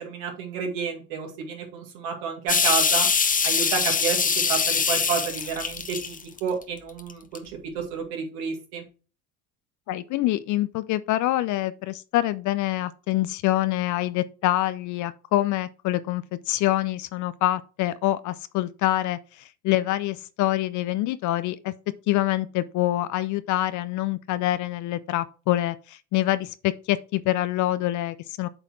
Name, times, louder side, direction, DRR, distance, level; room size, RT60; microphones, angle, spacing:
voice 1, 0.0-3.1 3.4-4.2 4.5-8.8, right 6 dB, 65° right, 2.2 m, -30 dB
sound 1, 2.5-6.6 7.1-7.4, left 5 dB, 15° left, 0.9 m, -23 dB
voice 2, 9.9-21.7 22.1-28.5, left 15 dB, 40° left, 0.5 m, -26 dB
7.8 x 4.1 x 4.5 m
hypercardioid pair, 70°, 47 cm